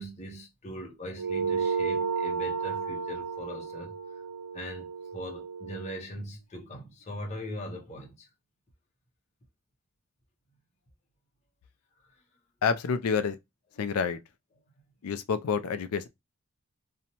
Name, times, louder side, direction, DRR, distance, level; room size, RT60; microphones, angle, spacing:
voice 1, 0.0-3.9 4.5-4.9 5.1-8.3, equal, 30° left, 0.6 m, -40 dB
sound 1, 1.2-6.0, right 5 dB, 90° right, 0.4 m, -32 dB
voice 2, 12.6-13.4 13.8-14.2 15.0-16.1, left 6 dB, 75° left, 0.4 m, -28 dB
2.7 x 2.1 x 2.8 m
head